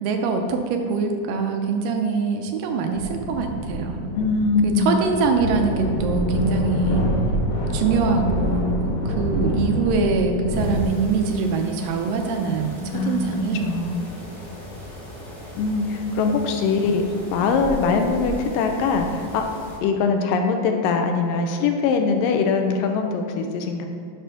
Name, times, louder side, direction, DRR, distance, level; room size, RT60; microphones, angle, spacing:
voice 1, 0.0-4.0 4.6-7.1 7.7-13.7, right 4 dB, 80° right, 4 dB, 2.4 m, -23 dB
sound 1, 2.9-11.3, equal, 65° left, 2.3 m, -26 dB
voice 2, 4.1-5.0 12.9-13.3 13.6-14.1 15.6-17.1 17.3-19.5 19.8-23.9, left 4 dB, 85° left, 4 dB, 2.3 m, -22 dB
sound 2, 10.5-19.8, equal, 15° left, 0.9 m, -38 dB
10.0 x 3.4 x 5.9 m, 2.3 s
omnidirectional pair, 4.0 m